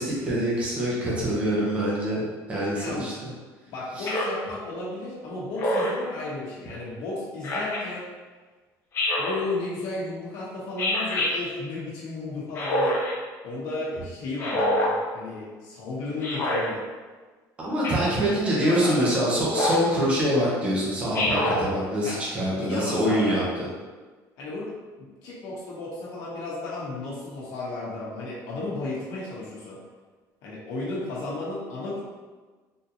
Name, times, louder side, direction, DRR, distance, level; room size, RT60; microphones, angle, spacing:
voice 1, 0.0-2.2 2.5-3.1 4.0-4.1 17.6-23.4, equal, 15° right, -6 dB, 0.7 m, -25 dB
voice 2, 2.7-3.1 3.7-8.1 9.2-13.0 13.4-16.8 18.1-19.3 22.0-22.2 22.6-23.6 24.4-24.7 25.0-29.8 30.4-32.0, left 2 dB, 75° left, -6 dB, 0.8 m, -34 dB
Speech synthesizer, 4.1-4.4 5.6-6.0 7.4-7.8 8.9-9.4 10.8-11.3 12.5-13.1 14.4-14.9 16.2-16.6 17.8-18.2 19.5-19.9 21.1-21.6, left 1 dB, 35° left, 0.6 m, -25 dB
3.6 x 2.6 x 2.8 m, 1.4 s
cardioid pair, 180°, 7 cm